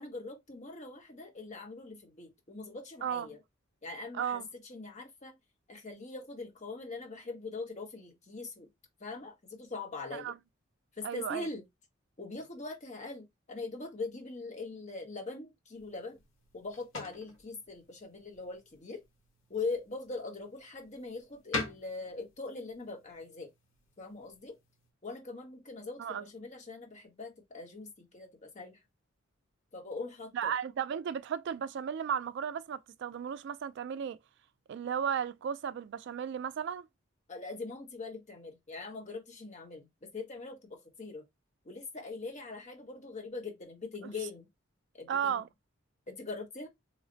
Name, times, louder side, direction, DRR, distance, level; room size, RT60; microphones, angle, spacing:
voice 1, 0.0-3.4 3.8-4.4 4.7-5.4 5.7-8.7 9.0-10.3 11.0-11.6 12.2-16.2 16.5-19.0 19.5-23.5 24.0-24.6 25.0-28.8 29.7-30.5 37.3-41.2 41.6-44.5 44.9-45.4 46.1-46.7, left 3 dB, 35° left, 1.0 m, -42 dB
voice 2, 4.1-4.5 10.1-10.4 11.0-11.5 26.0-26.2 30.3-34.2 34.7-36.9 45.1-45.5, right 8 dB, 60° right, 0.3 m, -34 dB
sound 1, 15.7-24.9, left 2 dB, 90° left, 1.2 m, -46 dB
3.2 x 2.1 x 3.8 m
head